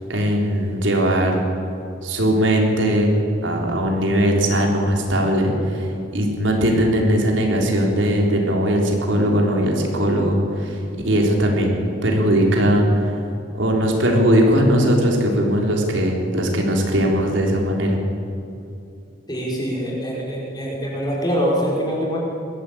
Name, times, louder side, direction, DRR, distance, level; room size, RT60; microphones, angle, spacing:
voice 1, 0.1-1.4 2.0-3.1 3.4-13.2 13.6-18.0, equal, 75° right, 0 dB, 3.9 m, -19 dB
voice 2, 19.3-22.2, equal, 20° left, -4 dB, 5.2 m, -24 dB
21.5 x 15.0 x 8.7 m, 2.6 s
head